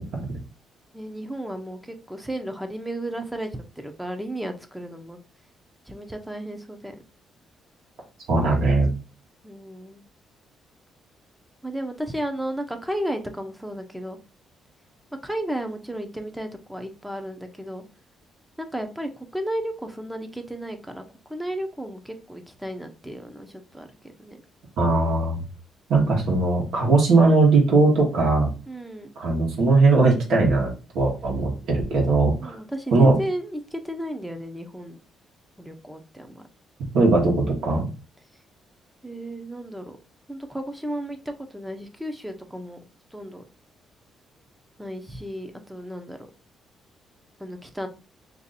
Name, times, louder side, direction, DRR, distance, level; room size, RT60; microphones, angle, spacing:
voice 1, 0.9-5.2 5.9-7.0 9.4-10.0 11.6-14.2 15.2-17.8 18.6-21.0 21.3-24.4 28.7-29.1 32.4-35.0 35.6-36.5 39.0-40.0 40.3-42.8 43.1-43.4 44.8-46.3 47.4-47.9, right 1 dB, 5° right, 5 dB, 0.6 m, -33 dB
voice 2, 8.3-8.9 24.8-25.4 25.9-28.5 29.2-32.5 32.9-33.2 36.9-37.9, right 3 dB, 75° right, -1 dB, 1.1 m, -19 dB
2.7 x 2.5 x 4.0 m, 0.33 s
cardioid pair, 90°, 0 cm